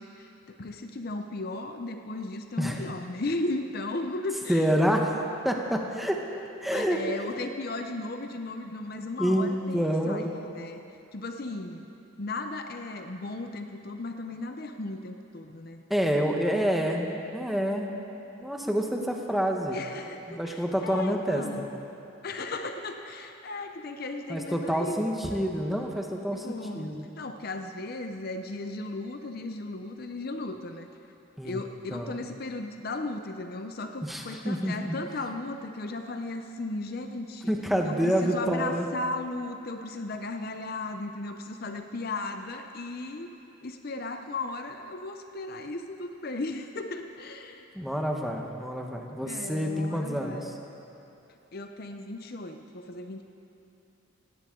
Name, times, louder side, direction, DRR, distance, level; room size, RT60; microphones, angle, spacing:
voice 1, 0.0-4.6 6.6-10.8 11.1-11.9 12.2-15.8 19.7-21.7 22.2-25.4 26.3-30.9 31.4-37.5 37.8-43.3 43.6-47.7 49.1-50.6 51.5-53.2, left 2 dB, 45° left, 6 dB, 0.6 m, -36 dB
voice 2, 4.5-5.1 5.4-6.2 6.6-7.0 9.2-10.3 15.9-17.9 18.4-19.8 20.3-21.7 24.3-27.0 31.4-31.6 31.9-32.2 34.0-35.0 37.5-38.9 47.7-50.5, equal, ahead, 1 dB, 1.0 m, -28 dB
18.0 x 17.5 x 3.8 m, 2.9 s
head